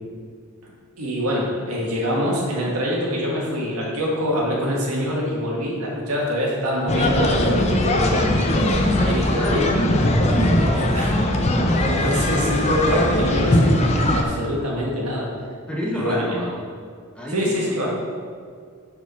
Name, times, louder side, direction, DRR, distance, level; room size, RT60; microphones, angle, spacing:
voice 1, 1.0-8.2 8.5-9.7 10.7-11.1 11.8-15.3 15.9-16.2 17.3-17.9, equal, 80° right, -3 dB, 1.6 m, -25 dB
sound 1, 6.9-14.2, left 1 dB, 30° left, 0.6 m, -20 dB
voice 2, 9.3-9.9 10.3-10.8 15.7-16.5 17.1-17.9, left 1 dB, 5° left, -4 dB, 1.0 m, -29 dB
6.2 x 4.8 x 5.6 m, 2.1 s
head